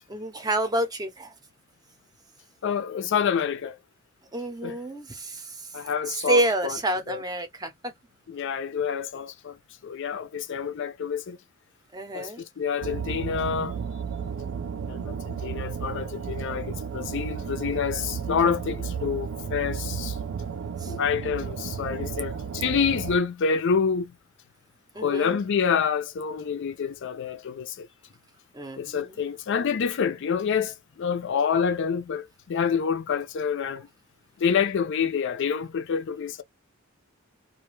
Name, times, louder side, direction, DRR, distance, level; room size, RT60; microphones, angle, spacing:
voice 1, 0.1-1.3 4.3-5.8 6.1-7.9 11.9-12.4 20.8-20.9 24.9-25.4 28.5-29.1, right 1 dB, 20° right, 0.6 m, -28 dB
voice 2, 2.6-3.8 4.6-4.8 5.7-6.8 7.1-7.2 8.3-11.4 12.1-13.8 14.9-20.2 20.9-24.2 25.0-27.9 28.8-33.9 34.4-36.4, left 6 dB, 60° left, 0.4 m, -27 dB
sound 1, 12.8-23.2, right 6 dB, 90° right, 0.4 m, -33 dB
2.4 x 2.2 x 3.0 m
head